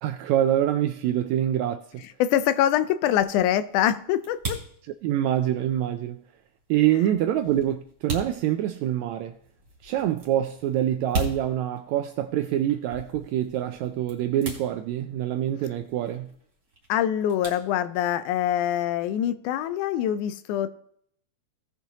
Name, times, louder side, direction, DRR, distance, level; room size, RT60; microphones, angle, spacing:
voice 1, 0.0-1.8 5.0-6.2 6.7-9.4 9.8-16.3, right 11 dB, 85° right, 1.6 m, -25 dB
sound 1, 1.9-18.4, right 2 dB, 35° right, 3.0 m, -40 dB
voice 2, 2.0-4.6 16.9-20.7, left 11 dB, 80° left, 2.0 m, -24 dB
18.0 x 6.9 x 2.9 m
omnidirectional pair, 3.7 m